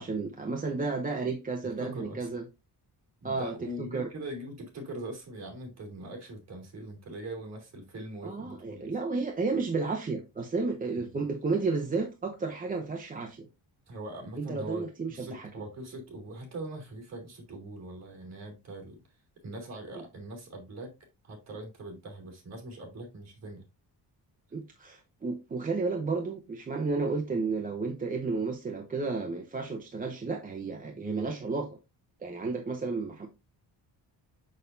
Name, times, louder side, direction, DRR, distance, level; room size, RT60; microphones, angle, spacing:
voice 1, 0.0-2.4 3.2-4.1 8.2-13.5 14.4-15.5 19.9-20.0 24.5-31.8 32.2-33.3, right 4 dB, 20° right, 0.8 m, -32 dB
voice 2, 1.8-2.3 3.2-8.9 11.0-11.2 13.9-19.0 19.4-20.9 21.2-23.6 30.9-31.2, right 1 dB, 40° right, 3.2 m, -42 dB
6.8 x 6.4 x 2.6 m
cardioid pair, 175°, 40 cm